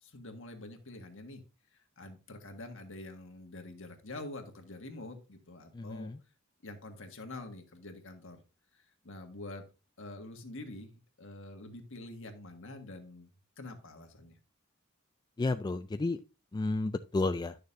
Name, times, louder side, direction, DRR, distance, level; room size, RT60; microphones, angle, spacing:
voice 1, 0.0-1.4 2.0-6.1 6.6-8.4 8.7-9.6 10.0-10.9 11.2-13.3 13.6-14.4, left 2 dB, 65° left, 4 dB, 1.6 m, -46 dB
voice 2, 5.7-6.2 15.4-16.2 16.5-17.6, left 2 dB, 20° left, 9 dB, 0.3 m, -32 dB
11.0 x 6.6 x 2.6 m, 0.31 s
head